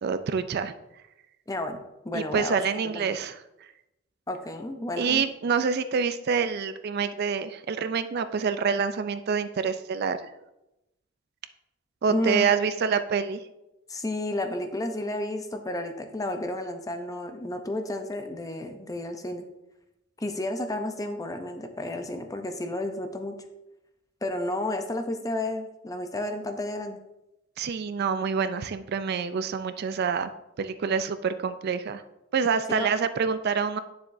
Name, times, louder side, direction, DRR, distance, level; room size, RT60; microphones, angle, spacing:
voice 1, 0.0-0.7 2.1-3.4 5.0-10.2 12.0-13.4 27.6-32.0 32.3-33.8, right 6 dB, 50° right, 11 dB, 0.4 m, -27 dB
voice 2, 1.5-1.8 2.0-3.1 4.3-5.2 12.1-12.4 13.9-19.4 20.2-23.4 24.2-27.0 32.7-32.9, left 1 dB, 15° left, 6 dB, 0.6 m, -31 dB
9.6 x 6.9 x 2.6 m, 0.92 s
head